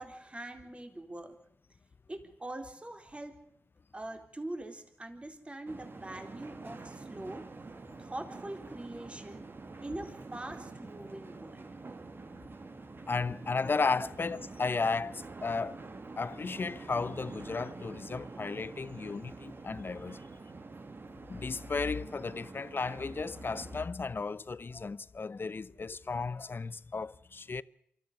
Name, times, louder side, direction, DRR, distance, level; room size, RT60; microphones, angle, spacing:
voice 1, 0.0-1.4 2.1-3.4 3.9-7.5 8.0-9.4 9.8-11.7, right 1 dB, 25° right, 3.9 m, -43 dB
sound 1, 5.7-23.9, right 3 dB, 50° right, 2.2 m, -47 dB
voice 2, 13.1-15.8 16.2-20.2 21.3-27.6, left 4 dB, 45° left, 0.9 m, -34 dB
24.5 x 14.0 x 9.6 m
supercardioid pair, 40°, 5 cm